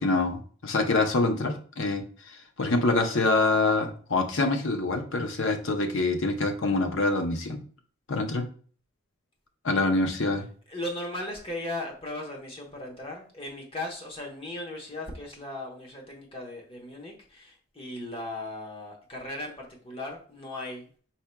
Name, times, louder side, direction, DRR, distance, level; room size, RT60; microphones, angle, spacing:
voice 1, 0.0-7.6 8.1-8.4 9.6-10.5, left 2 dB, 60° left, 4 dB, 0.7 m, -26 dB
voice 2, 10.7-20.9, left 1 dB, 25° left, 0 dB, 1.0 m, -37 dB
4.6 x 4.3 x 2.2 m, 0.43 s
head